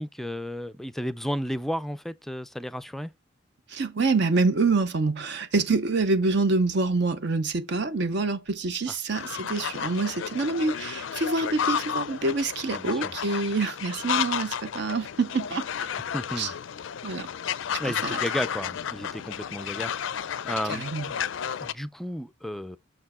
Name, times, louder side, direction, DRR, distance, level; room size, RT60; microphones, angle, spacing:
voice 1, 0.0-3.1 12.7-13.1 16.1-16.5 17.8-21.2 21.6-22.8, equal, ahead, 0.4 m, -33 dB
voice 2, 3.7-15.9 16.4-16.5 17.0-17.3 17.8-18.2 20.7-21.1, right 3 dB, 55° right, 0.6 m, -26 dB
sound 1, 9.1-21.7, left 8 dB, 70° left, 0.4 m, -32 dB
6.6 x 4.4 x 4.2 m
head